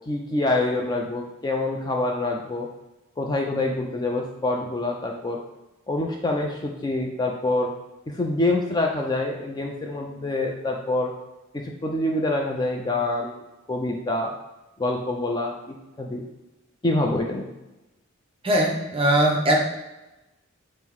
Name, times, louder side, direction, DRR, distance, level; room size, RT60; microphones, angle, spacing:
voice 1, 0.1-2.7 3.2-5.4 5.9-7.7 8.1-11.1 11.5-13.3 13.7-14.3 14.8-16.2 16.8-17.5, left 2 dB, 20° left, 1 dB, 0.4 m, -26 dB
voice 2, 18.4-19.6, right 1 dB, 25° right, 0 dB, 0.7 m, -20 dB
5.4 x 2.1 x 4.5 m, 1.0 s
head